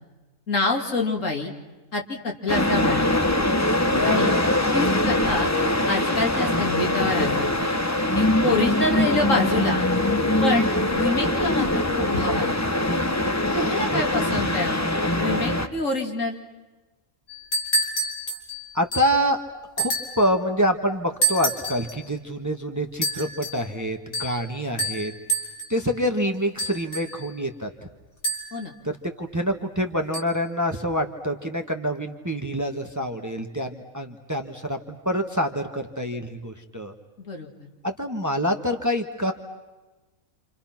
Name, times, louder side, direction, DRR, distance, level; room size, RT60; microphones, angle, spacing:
voice 1, 0.5-1.5 1.9-3.1 4.0-4.4 4.7-5.5 5.9-7.5 8.1-9.9 10.4-12.5 13.5-14.8 15.2-16.4 28.5-28.7 37.2-37.5, left 3 dB, 65° left, 1 dB, 3.0 m, -26 dB
sound 1, 2.5-15.7, left 1 dB, 15° left, 1.0 m, -22 dB
sound 2, 17.3-19.2 19.8-20.3 21.2-22.0 23.0-23.6 24.1-24.4 24.8-25.8 26.6-27.3 28.2-28.7 30.1-30.2, right 2 dB, 85° left, 4.2 m, -28 dB
voice 2, 18.7-19.4 19.8-25.1 25.7-27.7 28.8-36.9 37.8-39.3, equal, 15° right, 5 dB, 1.5 m, -26 dB
29.0 x 28.5 x 6.0 m, 1.1 s
omnidirectional pair, 1.5 m